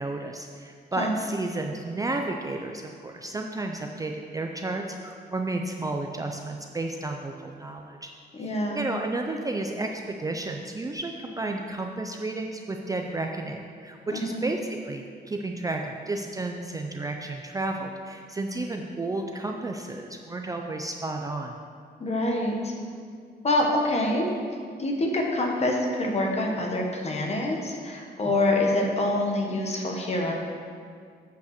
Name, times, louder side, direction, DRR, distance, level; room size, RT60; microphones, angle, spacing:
voice 1, 0.0-8.1 8.5-14.6 14.8-21.5, right 2 dB, 20° right, 3 dB, 0.4 m, -32 dB
voice 2, 8.3-8.8 14.1-14.5 22.0-22.7 23.4-24.3 24.8-30.3, left 1 dB, 35° left, 0 dB, 1.2 m, -26 dB
8.1 x 5.4 x 6.5 m, 2.2 s
wide cardioid pair, 160°, 18 cm